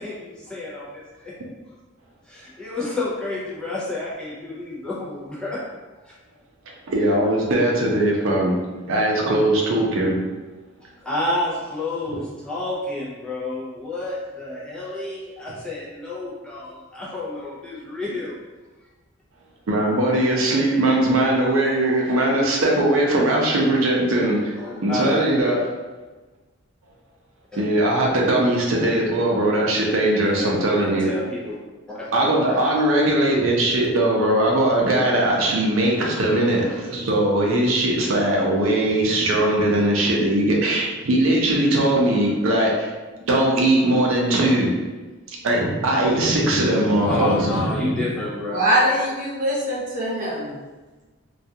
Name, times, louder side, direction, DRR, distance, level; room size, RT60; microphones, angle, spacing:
voice 1, 0.0-1.3 2.2-5.6 6.0-6.1 11.0-18.4 24.6-25.3 27.5-27.6 30.2-30.6 30.9-31.5 31.9-32.7 32.9-33.0 46.7-48.6, left 2 dB, 5° left, -8 dB, 0.4 m, -30 dB
voice 2, 6.9-8.6 8.9-10.2 19.7-24.6 24.8-25.6 27.6-31.1 32.1-42.9 43.3-44.8 45.3-48.2, right 1 dB, 75° right, -2 dB, 0.5 m, -20 dB
voice 3, 48.5-50.6, equal, 40° right, -6 dB, 0.8 m, -22 dB
2.3 x 2.2 x 2.7 m, 1.3 s
head